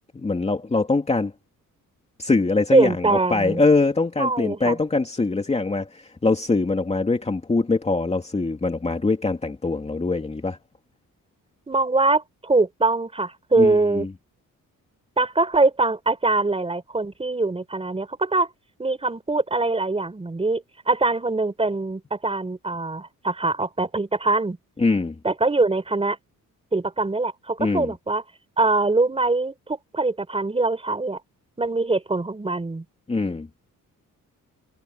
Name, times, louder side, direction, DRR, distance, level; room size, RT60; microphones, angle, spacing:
voice 1, 0.1-1.3 2.2-10.6 13.6-14.1 24.8-25.2 27.6-27.9 33.1-33.5, left 3 dB, 20° left, 2.5 m, -23 dB
voice 2, 2.7-3.6 4.2-4.8 11.7-14.1 15.2-18.5 18.8-24.6 25.2-26.2 26.7-28.2 28.6-31.2 31.6-32.8, right 3 dB, 15° right, 4.1 m, -23 dB
wide cardioid pair, 175°, 34 cm